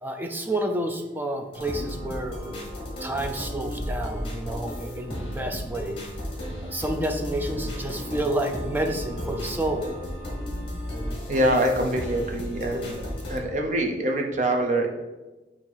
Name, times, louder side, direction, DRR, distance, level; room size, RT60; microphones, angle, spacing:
voice 1, 0.0-2.4 3.0-6.0 6.6-9.9, right 1 dB, 10° right, 4 dB, 0.4 m, -29 dB
sound 1, 1.5-13.4, equal, 30° left, 1.4 m, -34 dB
voice 2, 11.3-14.9, right 1 dB, 40° right, 2 dB, 0.7 m, -25 dB
7.1 x 2.9 x 4.6 m, 1.1 s
head